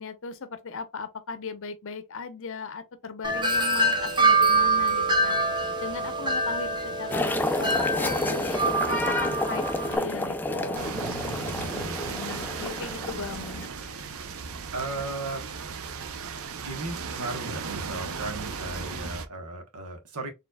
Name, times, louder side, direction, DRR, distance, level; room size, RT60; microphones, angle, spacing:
voice 1, 0.0-5.4 5.8-10.9 12.0-14.2, left 4 dB, 60° left, 0.8 m, -37 dB
Wind chime, 3.2-10.0, right 2 dB, 20° right, 0.7 m, -25 dB
sound 1, 7.1-13.7, left 1 dB, 10° left, 0.4 m, -30 dB
sound 2, 10.7-19.3, right 5 dB, 65° right, 0.6 m, -36 dB
voice 2, 10.9-12.0 14.7-15.4 16.6-20.3, right 2 dB, 80° right, 1.2 m, -36 dB
4.4 x 3.3 x 2.2 m
head